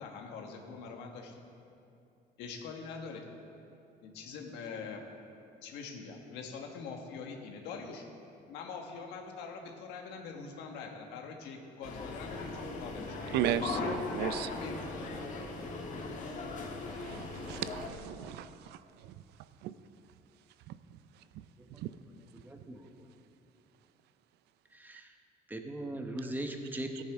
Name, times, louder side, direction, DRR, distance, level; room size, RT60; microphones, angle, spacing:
voice 1, 0.0-1.4 2.4-3.3 4.0-5.0 5.6-8.0 8.5-13.2 13.4-14.2 14.5-15.1, left 5 dB, 90° left, 3 dB, 1.4 m, -44 dB
sound 1, 11.8-17.9, left 3 dB, 45° left, 1.5 m, -38 dB
voice 2, 13.3-14.5 17.0-19.2 19.6-19.7 20.7-20.8 21.4-21.5 21.8-21.9 27.0-27.1, right 11 dB, 80° right, 13 dB, 0.5 m, -36 dB
voice 3, 22.4-22.9 24.7-25.1 25.5-27.0, right 1 dB, 10° right, 4 dB, 1.0 m, -39 dB
14.5 x 9.8 x 3.6 m, 2.6 s
cardioid pair, 110°, 17 cm